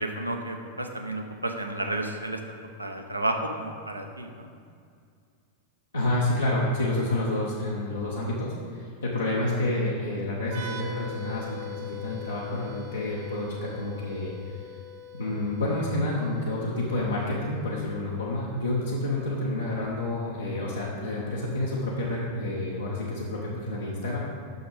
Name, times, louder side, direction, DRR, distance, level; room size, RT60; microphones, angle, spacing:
voice 1, 0.0-4.5, right 1 dB, 85° right, 4 dB, 0.7 m, -32 dB
voice 2, 5.9-14.7 15.1-24.2, left 1 dB, 75° left, -6 dB, 1.0 m, -29 dB
sound 1, 10.4-17.9, left 4 dB, 55° right, 0.8 m, -42 dB
6.2 x 6.2 x 5.2 m, 2.2 s
figure-of-eight pair, 90°, 0 cm